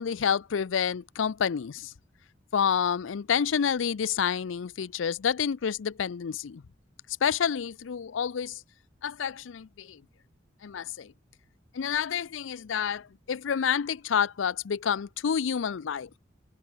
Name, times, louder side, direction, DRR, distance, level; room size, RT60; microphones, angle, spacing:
voice 1, 0.0-1.9 2.5-6.6 7.2-8.6 9.0-10.0 10.6-11.1 11.7-16.1, left 7 dB, 85° left, 0.5 m, -29 dB
head